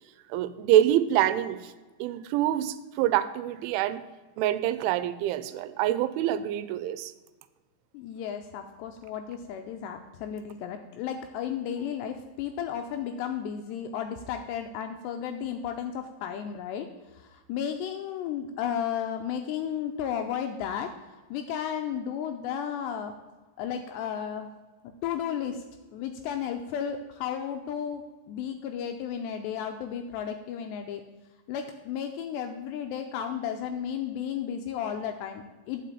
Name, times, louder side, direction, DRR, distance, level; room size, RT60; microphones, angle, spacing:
voice 1, 0.3-1.7 2.0-4.0 4.4-7.1, right 12 dB, 85° right, 13 dB, 3.0 m, -26 dB
voice 2, 7.9-16.9 17.1-20.9 21.3-23.1 23.6-24.5 25.0-25.6 25.9-28.0 28.3-31.0 31.5-35.8, left 8 dB, 80° left, 6 dB, 2.5 m, -33 dB
10.0 x 6.0 x 8.4 m, 1.2 s
omnidirectional pair, 5.5 m